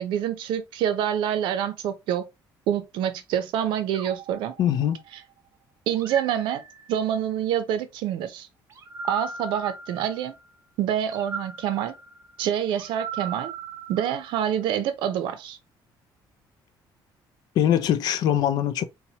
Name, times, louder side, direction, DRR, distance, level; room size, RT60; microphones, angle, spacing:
voice 1, 0.0-2.3 2.7-4.5 5.1-5.2 5.9-6.6 6.9-8.5 9.0-10.3 10.8-11.9 12.4-13.5 13.9-15.6, right 10 dB, 75° right, 0.6 m, -26 dB
sound 1, 3.9-5.3 5.9-7.2 8.7-10.4 11.1-14.6, right 4 dB, 35° right, 0.5 m, -39 dB
voice 2, 4.6-5.0 17.6-18.8, left 10 dB, 55° left, 0.4 m, -22 dB
4.2 x 2.2 x 2.8 m
cardioid pair, 175°, 8 cm